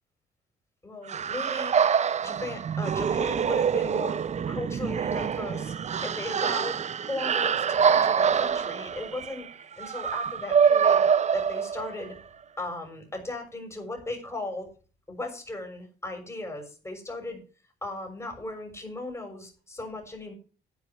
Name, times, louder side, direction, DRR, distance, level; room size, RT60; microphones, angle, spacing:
voice 1, 0.8-1.8 2.2-4.2 4.5-5.7 6.0-9.5 9.8-12.1 12.6-14.7 15.1-17.4 17.8-20.3, left 2 dB, 15° left, 3 dB, 6.5 m, -37 dB
sound 1, 1.1-12.1, right 7 dB, 35° right, 0.5 m, -25 dB
11.0 x 9.6 x 6.1 m, 0.37 s
cardioid pair, 90°, 20 cm